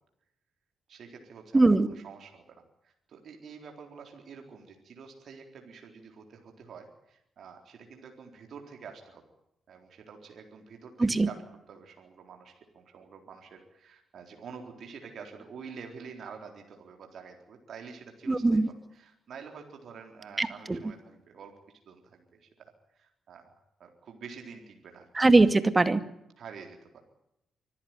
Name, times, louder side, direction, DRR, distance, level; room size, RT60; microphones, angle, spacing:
voice 1, 0.9-2.5 2.8-9.2 9.7-11.4 11.7-21.5 21.9-23.4 23.8-25.1 26.4-27.0, right 6 dB, 65° right, 3 dB, 4.0 m, -48 dB
voice 2, 1.5-1.9 11.0-11.3 18.3-18.7 20.4-20.8 25.1-26.0, right 2 dB, 30° right, 11 dB, 2.3 m, -21 dB
25.0 x 15.0 x 9.2 m, 0.83 s
hypercardioid pair, 40°, 0 cm